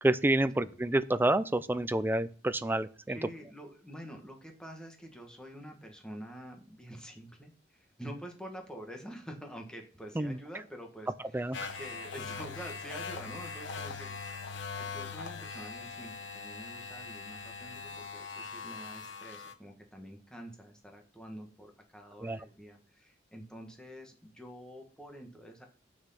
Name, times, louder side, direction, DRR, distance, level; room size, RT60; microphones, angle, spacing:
voice 1, 0.0-3.2 10.2-10.4 11.3-11.7 22.2-22.4, right 1 dB, 10° right, 13 dB, 0.4 m, -28 dB
voice 2, 3.1-14.5 14.7-25.6, equal, 5° left, 2 dB, 1.7 m, -47 dB
sound 1, 11.5-19.5, left 5 dB, 70° left, 1.1 m, -41 dB
8.2 x 6.3 x 5.8 m, 0.41 s
head